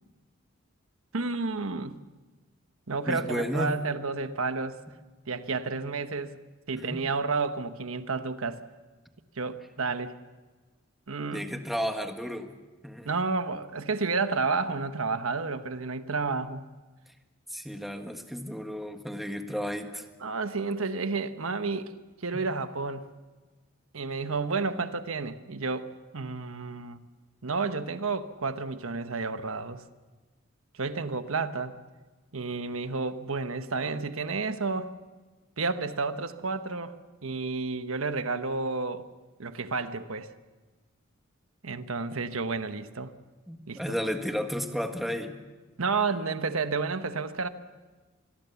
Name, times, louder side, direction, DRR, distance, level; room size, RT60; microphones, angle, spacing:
voice 1, 1.1-2.0 2.9-4.8 5.3-6.4 6.7-8.6 9.4-10.2 11.1-11.4 13.0-16.6 20.2-21.9 22.2-23.0 23.9-25.9 26.1-27.0 27.4-29.8 30.8-31.7 32.3-34.9 35.6-37.0 37.2-39.0 39.4-40.3 41.6-43.1 43.7-43.8 45.8-47.5, right 4 dB, 85° right, 10 dB, 1.2 m, -31 dB
voice 2, 3.1-3.8 6.7-7.1 11.3-12.5 12.8-13.1 17.5-20.1 22.3-22.4 43.5-45.4, equal, ahead, 5 dB, 1.6 m, -33 dB
26.0 x 21.5 x 7.0 m, 1.3 s
head